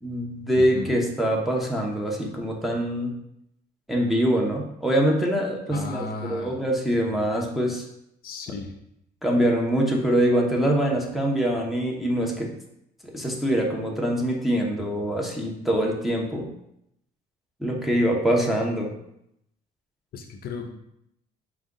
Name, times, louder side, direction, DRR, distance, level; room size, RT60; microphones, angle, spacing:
voice 1, 0.0-3.1 3.9-7.8 9.2-12.5 13.0-16.5 17.6-18.9, equal, ahead, -2 dB, 0.8 m, -24 dB
voice 2, 0.6-0.9 5.7-6.5 8.2-8.7 20.1-20.7, left 4 dB, 60° left, 5 dB, 0.5 m, -34 dB
4.9 x 2.3 x 3.7 m, 0.79 s
cardioid pair, 110°, 17 cm